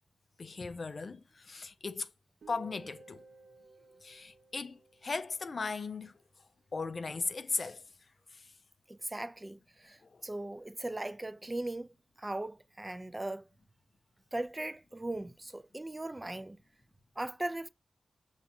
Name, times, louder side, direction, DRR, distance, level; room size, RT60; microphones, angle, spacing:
voice 1, 0.4-2.1 2.5-3.2 4.0-6.1 6.7-7.8 8.3-8.5 10.1-10.2, left 4 dB, 55° left, 0.4 m, -37 dB
Guitar, 2.4-6.2, right 3 dB, 70° right, 0.7 m, -56 dB
voice 2, 8.9-11.9 12.2-13.4 14.3-16.6 17.2-17.7, right 1 dB, 25° right, 0.4 m, -38 dB
5.7 x 2.4 x 2.6 m
cardioid pair, 45°, 0 cm